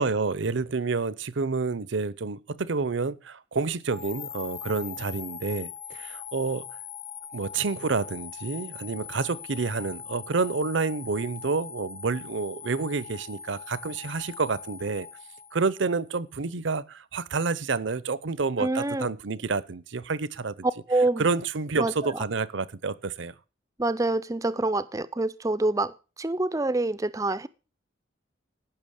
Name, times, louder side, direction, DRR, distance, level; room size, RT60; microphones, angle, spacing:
voice 1, 0.0-6.6 7.3-15.1 15.5-20.7 21.2-23.3, right 4 dB, 70° right, 0.7 m, -29 dB
sound 1, 3.9-16.1, left 7 dB, 40° left, 0.9 m, -41 dB
voice 2, 18.6-19.1 20.9-21.3 21.8-21.9 23.8-27.5, right 2 dB, 15° right, 0.5 m, -26 dB
14.5 x 6.1 x 6.5 m
head